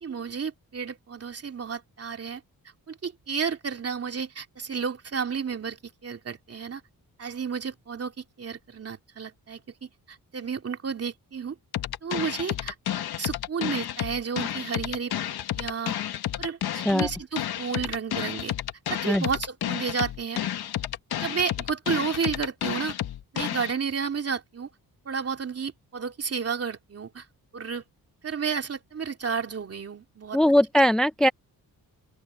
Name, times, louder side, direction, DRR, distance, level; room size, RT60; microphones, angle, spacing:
voice 1, 0.0-2.4 2.9-6.8 7.2-11.6 12.0-15.1 15.5-16.0 16.4-16.6 16.9-18.5 18.9-20.4 21.2-22.9 23.3-24.7 25.0-27.3 27.5-27.8 28.2-30.4, right 6 dB, 40° right, 2.9 m, -32 dB
sound 1, 11.7-23.7, left 11 dB, 90° left, 1.3 m, -31 dB
voice 2, 16.7-17.1 19.1-19.3 30.3-31.3, equal, ahead, 0.5 m, -20 dB
open air
wide cardioid pair, 130°, 37 cm